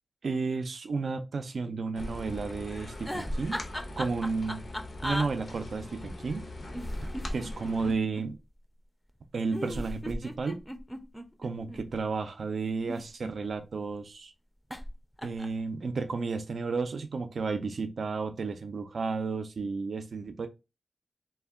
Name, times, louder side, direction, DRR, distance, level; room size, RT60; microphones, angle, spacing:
voice 1, 0.2-3.6 4.0-4.6 5.0-6.5 7.3-8.4 9.3-10.6 11.4-14.3 15.2-20.5, right 4 dB, 80° right, 0.3 m, -32 dB
sound 1, 1.9-7.9, left 1 dB, 70° left, 0.6 m, -42 dB
sound 2, 3.1-5.3 6.7-8.2 9.5-11.8 12.7-13.7 14.7-14.9 15.2-15.6, equal, 10° left, 0.4 m, -36 dB
2.1 x 2.1 x 3.4 m
wide cardioid pair, 85°, 0 cm